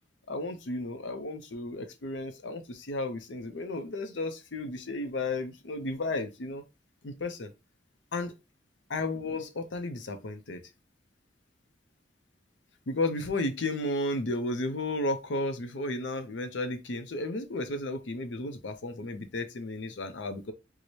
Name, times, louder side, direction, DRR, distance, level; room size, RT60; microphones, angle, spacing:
voice 1, 0.3-6.6 7.0-7.5 8.1-8.4 8.9-10.6 12.9-20.5, left 2 dB, 75° left, 0.6 m, -33 dB
4.6 x 2.1 x 2.7 m
head